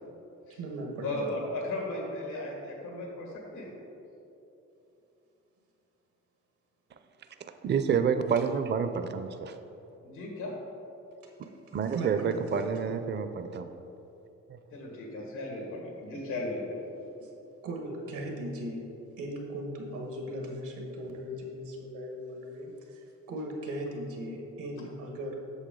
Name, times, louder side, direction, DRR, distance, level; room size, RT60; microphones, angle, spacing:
voice 1, 0.5-1.2 11.9-12.6 17.2-17.3 17.6-18.9 19.2-25.5, right 1 dB, 90° right, 1 dB, 1.5 m, -38 dB
voice 2, 1.0-3.7 10.0-10.5 14.7-16.6, left 2 dB, 90° left, -1 dB, 1.7 m, -36 dB
voice 3, 7.6-9.6 11.7-13.7 14.5-14.6, right 6 dB, 35° right, 9 dB, 0.5 m, -28 dB
8.2 x 6.4 x 3.8 m, 3.0 s
cardioid pair, 90°, 30 cm